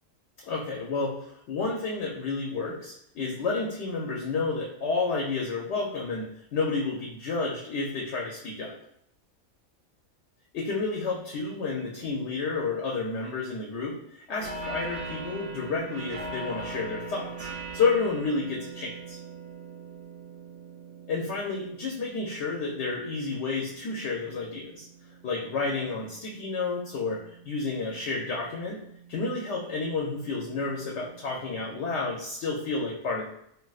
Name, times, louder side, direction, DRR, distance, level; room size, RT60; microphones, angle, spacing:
voice 1, 0.5-1.1 1.5-8.7 10.5-17.5 17.7-19.2 21.1-24.9 25.2-28.8 29.1-33.3, left 4 dB, 70° left, -2 dB, 0.8 m, -30 dB
sound 1, 14.4-31.7, right 3 dB, 60° right, 0.7 m, -43 dB
3.4 x 2.4 x 2.3 m, 0.73 s
omnidirectional pair, 1.3 m